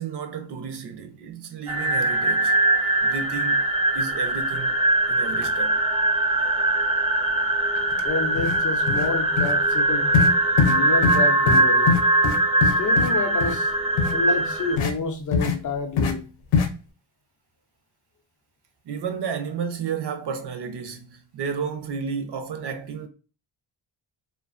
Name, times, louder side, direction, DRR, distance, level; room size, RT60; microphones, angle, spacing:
voice 1, 0.0-2.5 3.0-3.6 3.9-4.8 5.1-5.8 18.8-23.1, right 6 dB, 55° right, 0.6 m, -32 dB
sound 1, 1.7-14.8, right 2 dB, 15° right, 0.4 m, -21 dB
sound 2, 7.9-8.0 8.4-8.6 8.9-9.1 9.4-9.5 10.1-10.3 10.6-10.8 11.0-11.2 11.5-11.6 11.9-13.1 13.4-13.6 14.0-14.1 14.8-14.9 15.3-15.6 16.0-16.1 16.5-16.7, left 6 dB, 75° left, 0.6 m, -22 dB
voice 2, 8.0-10.1 10.6-12.0 12.6-13.7 14.1-16.3, left 4 dB, 40° left, 0.5 m, -29 dB
2.3 x 2.2 x 2.4 m
cardioid pair, 110°, 49 cm